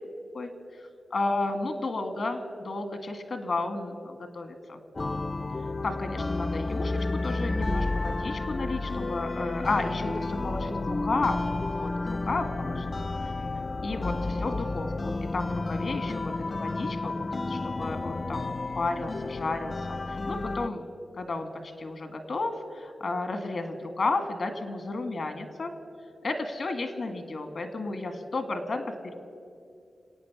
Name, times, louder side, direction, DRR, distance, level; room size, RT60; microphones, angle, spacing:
voice 1, 0.8-4.8 5.8-12.9 13.8-20.8 21.1-21.5 21.8-25.7 26.2-29.1, left 3 dB, 65° left, 8 dB, 1.8 m, -32 dB
sound 1, 5.0-20.7, left 3 dB, 40° left, 0.4 m, -31 dB
26.5 x 8.9 x 6.0 m, 2.4 s
cardioid pair, 60°, 0 cm